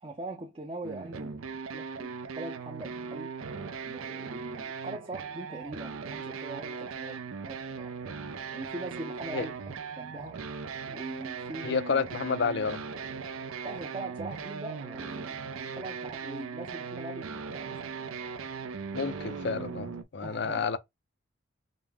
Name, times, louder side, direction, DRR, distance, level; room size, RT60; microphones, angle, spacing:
voice 1, 0.0-3.3 3.8-7.9 8.5-10.4 10.9-11.8 13.6-17.9 20.2-20.7, right 2 dB, 25° right, 0.5 m, -42 dB
sound 1, 0.8-20.0, right 5 dB, 85° right, 0.5 m, -39 dB
voice 2, 11.6-12.8 18.9-20.8, left 5 dB, 55° left, 0.5 m, -30 dB
5.1 x 2.0 x 3.4 m
head